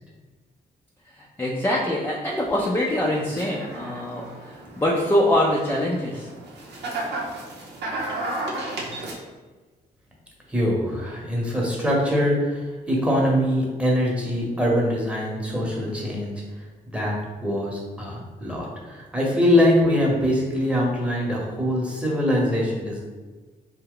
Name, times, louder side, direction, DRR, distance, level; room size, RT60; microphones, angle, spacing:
voice 1, 1.1-6.3, left 1 dB, 10° left, -3 dB, 0.5 m, -24 dB
sound 1, 2.3-9.1, right 2 dB, 75° right, 0.8 m, -34 dB
voice 2, 10.5-17.2 17.4-23.0, equal, 5° right, -3 dB, 1.0 m, -23 dB
2.7 x 2.2 x 3.7 m, 1.3 s
cardioid pair, 65°, 18 cm